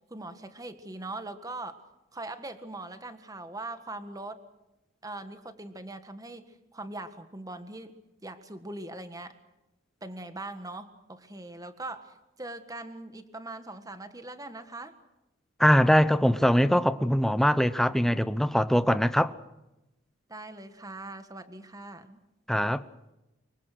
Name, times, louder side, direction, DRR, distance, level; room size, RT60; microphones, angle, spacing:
voice 1, 0.1-1.8 2.1-4.4 5.0-8.0 8.2-9.4 10.0-14.9 20.3-22.2, right 2 dB, 20° right, 1.6 m, -41 dB
voice 2, 15.6-19.3 22.5-22.8, equal, ahead, 0.8 m, -22 dB
25.5 x 23.5 x 6.2 m
head